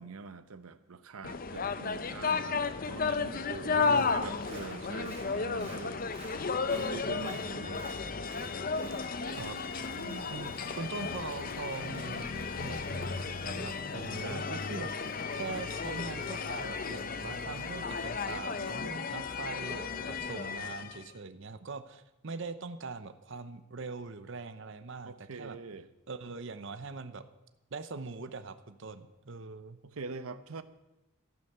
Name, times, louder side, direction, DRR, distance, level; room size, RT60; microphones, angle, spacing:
voice 1, 0.0-6.3 6.7-8.0 9.9-10.3 14.1-14.6 25.0-25.9 29.8-30.6, right 4 dB, 90° right, 12 dB, 0.8 m, -44 dB
sound 1, 1.2-21.1, left 4 dB, 40° left, 0.7 m, -34 dB
voice 2, 3.5-4.2 9.4-9.7 10.3-14.9 15.3-25.6 26.1-27.3 27.7-29.8, right 3 dB, 60° right, 11 dB, 0.8 m, -42 dB
Applause, 3.8-20.4 20.8-20.9, right 3 dB, 30° right, 3.2 m, -54 dB
14.0 x 11.0 x 6.7 m, 0.98 s
head